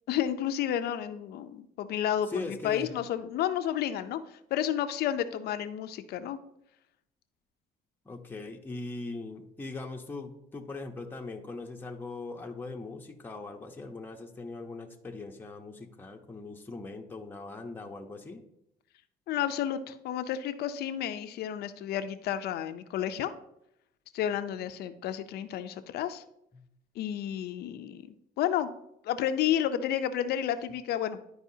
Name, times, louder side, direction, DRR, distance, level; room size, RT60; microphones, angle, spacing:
voice 1, 0.1-4.2 4.5-6.4 19.3-23.3 24.1-26.2 27.0-28.0 28.4-28.7 29.0-31.2, left 10 dB, 70° left, 10 dB, 0.6 m, -31 dB
voice 2, 2.3-2.9 8.0-18.4, left 3 dB, 10° left, 1 dB, 0.8 m, -40 dB
11.5 x 4.8 x 2.7 m, 0.80 s
cardioid pair, 110°, 17 cm